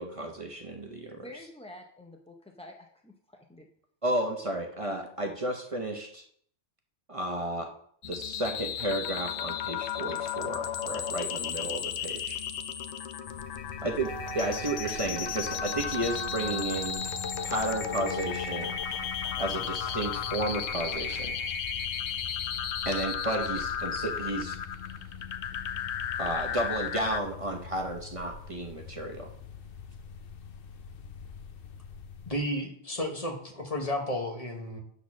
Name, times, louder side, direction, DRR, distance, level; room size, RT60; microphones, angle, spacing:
voice 1, 0.0-1.3 4.0-6.2 7.1-7.7 8.0-12.4 13.8-17.0 17.4-18.7 19.4-21.4 22.8-24.6 26.2-29.3, right 1 dB, 35° right, 3 dB, 0.9 m, -32 dB
voice 2, 1.1-3.7, left 1 dB, 10° left, 2 dB, 0.4 m, -48 dB
sound 1, 8.0-27.2, left 8 dB, 90° left, 0.9 m, -34 dB
sound 2, 13.3-32.4, left 6 dB, 60° left, 0.9 m, -45 dB
sound 3, 14.0-21.5, right 6 dB, 55° right, 1.1 m, -44 dB
voice 3, 32.3-34.8, left 1 dB, 35° left, 2 dB, 1.2 m, -32 dB
8.2 x 4.1 x 6.1 m, 0.64 s
omnidirectional pair, 1.1 m